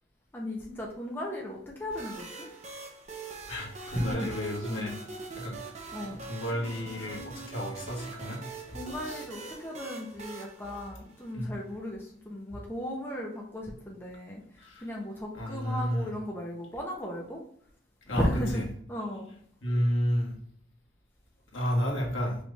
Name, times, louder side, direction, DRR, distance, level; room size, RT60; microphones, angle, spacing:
voice 1, 0.3-2.5 3.9-5.0 5.9-6.2 8.7-14.4 14.8-17.4 18.1-18.6 18.9-19.3, equal, 10° left, -2 dB, 0.7 m, -36 dB
sound 1, 1.9-11.5, right 4 dB, 35° right, 0.7 m, -43 dB
voice 2, 3.5-4.9 5.3-5.6 6.2-8.4 9.1-9.2 11.3-11.5 14.6-14.8 15.3-16.1 18.1-18.3 19.6-20.4 21.5-22.4, equal, 80° left, -2 dB, 1.5 m, -31 dB
5.1 x 2.5 x 3.2 m, 0.64 s
head